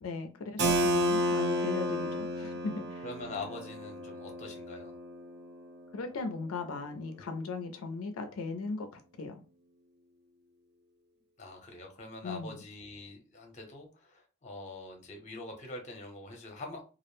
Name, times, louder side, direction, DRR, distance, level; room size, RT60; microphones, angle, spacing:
voice 1, 0.0-3.0 5.9-8.9 9.2-9.4 12.2-12.6, left 4 dB, 80° left, 0.4 m, -38 dB
Keyboard (musical), 0.6-6.1, equal, 50° right, 0.5 m, -32 dB
voice 2, 3.0-4.9 11.4-16.8, left 2 dB, 35° left, 0.6 m, -44 dB
2.4 x 2.0 x 3.0 m
head